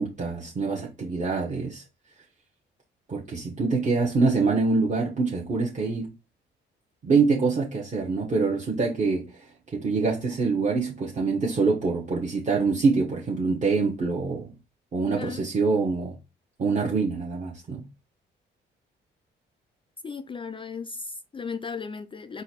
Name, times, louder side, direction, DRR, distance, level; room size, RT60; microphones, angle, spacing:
voice 1, 0.0-1.8 3.1-6.1 7.0-14.5 14.9-16.2 16.6-17.9, right 4 dB, 40° right, 1.0 m, -25 dB
voice 2, 15.1-15.4 20.0-22.4, left 5 dB, 25° left, 0.3 m, -36 dB
3.9 x 2.4 x 4.3 m
cardioid pair, 90°, 20 cm